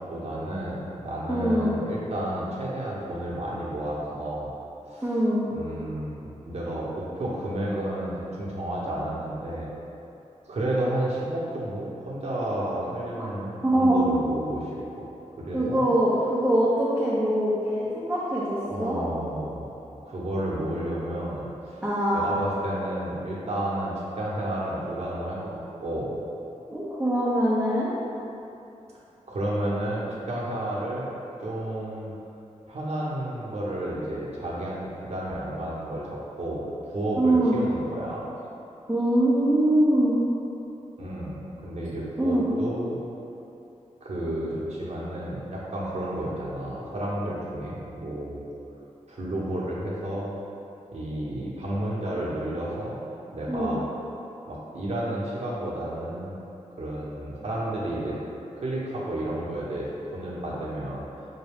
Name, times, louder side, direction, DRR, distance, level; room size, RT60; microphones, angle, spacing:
voice 1, 0.0-4.5 4.9-5.1 5.5-9.7 10.5-14.7 15.0-15.1 15.4-15.9 18.6-19.7 20.0-21.8 22.1-26.1 29.3-31.1 31.4-32.1 32.7-34.8 35.1-38.3 41.0-43.0 44.0-48.5 49.1-50.3 50.9-53.0 53.3-53.8 54.5-56.4 56.8-58.2 58.5-61.1, right 1 dB, 55° right, -6 dB, 0.9 m, -31 dB
voice 2, 1.3-1.8 5.0-5.5 13.2-13.3 13.6-14.1 15.5-19.0 21.8-22.3 26.7-27.9 37.2-37.6 38.9-40.2 42.2-42.5 53.5-53.8, right 1 dB, 10° right, -9 dB, 0.6 m, -23 dB
5.7 x 2.2 x 3.5 m, 2.8 s
wide cardioid pair, 90°, 13 cm